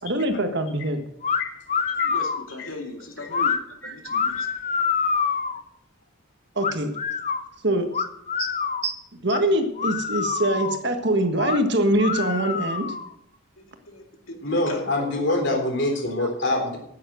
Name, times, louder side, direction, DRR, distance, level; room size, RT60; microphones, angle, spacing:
voice 1, 0.0-1.0 3.8-3.9 6.5-6.9 7.6-8.0 8.4-8.5 8.8-12.9 15.3-15.4, right 1 dB, 55° right, 1.6 m, -24 dB
sound 1, 1.2-1.4 1.7-2.4 3.3-3.6 4.1-5.6 6.6-7.4 7.9-8.9 9.3-9.4 9.8-10.8 11.4-11.6 12.0-13.1, left 6 dB, 35° left, 0.7 m, -26 dB
voice 2, 2.0-3.6 3.8-4.5 13.6-15.2, left 2 dB, 85° left, 2.5 m, -38 dB
voice 3, 14.4-16.8, left 1 dB, 55° left, 3.7 m, -25 dB
9.9 x 9.4 x 7.7 m
head